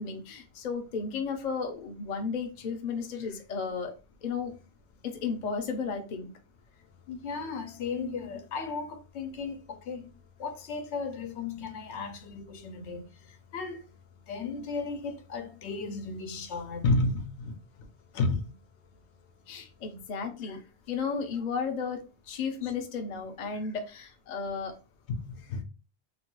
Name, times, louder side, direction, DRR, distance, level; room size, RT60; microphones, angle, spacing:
voice 1, 0.0-3.9 4.2-4.5 5.0-6.3 19.5-20.6 20.9-24.8, left 5 dB, 50° left, 0.6 m, -34 dB
voice 2, 7.1-10.1 10.4-13.8 14.3-17.9 18.1-18.5 20.5-20.6 22.6-22.7 25.3-25.6, left 3 dB, 90° left, 0.9 m, -33 dB
2.9 x 2.2 x 2.9 m
omnidirectional pair, 1.1 m